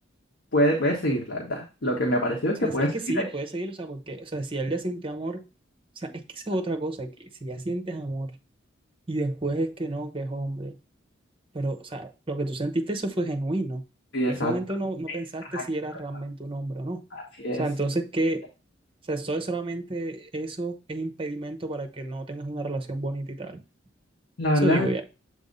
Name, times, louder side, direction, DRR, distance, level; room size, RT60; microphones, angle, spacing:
voice 1, 0.5-3.2 14.1-14.6 15.5-15.6 17.1-17.6 24.4-24.9, equal, 65° left, 1.3 m, -25 dB
voice 2, 2.6-5.4 6.0-8.3 9.1-10.7 11.5-13.8 14.3-17.0 17.6-18.5 19.1-23.6 24.6-25.0, right 2 dB, 30° right, 0.8 m, -30 dB
7.9 x 2.7 x 5.2 m
head